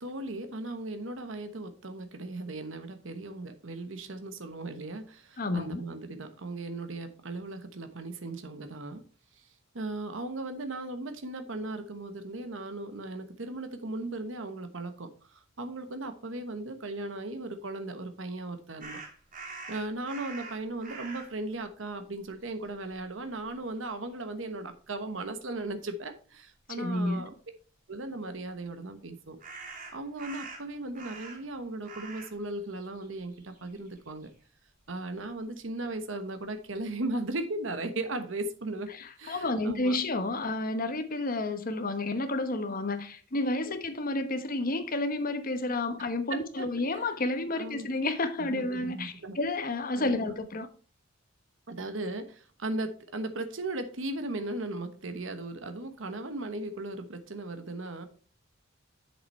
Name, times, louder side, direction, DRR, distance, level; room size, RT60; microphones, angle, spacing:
voice 1, 0.0-9.0 9.7-19.0 19.7-27.3 27.9-29.4 29.9-34.3 34.9-38.9 39.2-40.0 43.6-43.7 46.3-46.7 46.9-47.1 47.5-47.9 48.4-49.4 50.0-50.4 51.7-58.1, right 2 dB, 75° right, 1.1 m, -37 dB
voice 2, 5.4-5.8 26.8-27.2 38.9-50.7, left 2 dB, 45° left, 1.1 m, -30 dB
sound 1, 18.8-21.4 22.2-22.3 22.6-23.5 29.4-31.6 31.8-32.4 32.7-34.3, right 4 dB, 45° right, 2.5 m, -44 dB
8.0 x 6.7 x 4.3 m
head